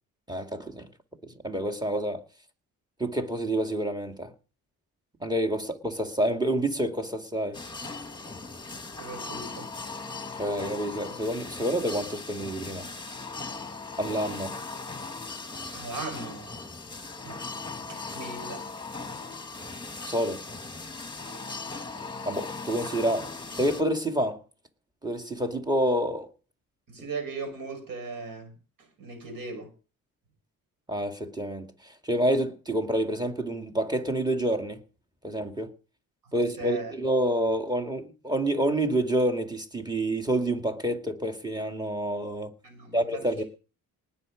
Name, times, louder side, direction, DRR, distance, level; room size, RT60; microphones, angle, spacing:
voice 1, 0.3-0.9 1.2-2.2 3.0-4.3 5.2-7.6 10.3-12.9 14.0-14.6 20.1-20.4 22.3-24.4 25.0-26.3 27.0-27.1 30.9-34.8 35.2-35.7 36.3-42.5 42.9-43.4, right 1 dB, 10° right, 2.3 m, -28 dB
sound 1, 7.5-23.8, left 3 dB, 15° left, 1.9 m, -38 dB
voice 2, 9.0-9.7 15.7-16.5 17.2-17.4 17.9-18.6 21.3-21.4 26.9-28.6 29.0-29.7 36.3-36.9 42.6-43.2, right 4 dB, 70° right, 5.6 m, -38 dB
19.5 x 7.3 x 5.1 m
cardioid pair, 90°, 35 cm